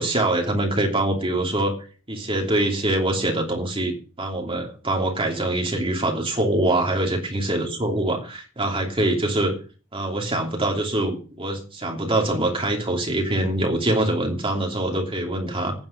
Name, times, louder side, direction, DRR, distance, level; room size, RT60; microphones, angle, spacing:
voice 1, 0.0-1.7 2.1-3.9 4.2-9.5 9.9-15.7, right 1 dB, 25° right, 1 dB, 3.0 m, -24 dB
9.7 x 7.3 x 8.1 m, 0.37 s
head